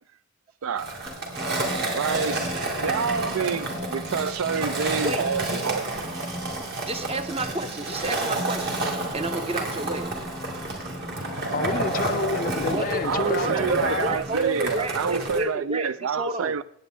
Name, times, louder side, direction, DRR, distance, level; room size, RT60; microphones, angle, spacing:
Skateboard, 0.8-15.4, right 2 dB, 50° right, 2.5 m, -30 dB
sound 1, 1.1-3.3 3.6-5.7 6.0-7.5 8.4-14.0 14.3-14.4, left 1 dB, 5° left, 0.7 m, -40 dB
voice 1, 1.9-6.0 13.0-16.6, right 6 dB, 75° right, 0.4 m, -28 dB
voice 2, 6.8-8.8 9.1-10.2 12.7-16.6, right 2 dB, 30° right, 0.8 m, -30 dB
voice 3, 11.5-14.1, left 4 dB, 40° left, 0.5 m, -29 dB
16.5 x 8.6 x 3.8 m
head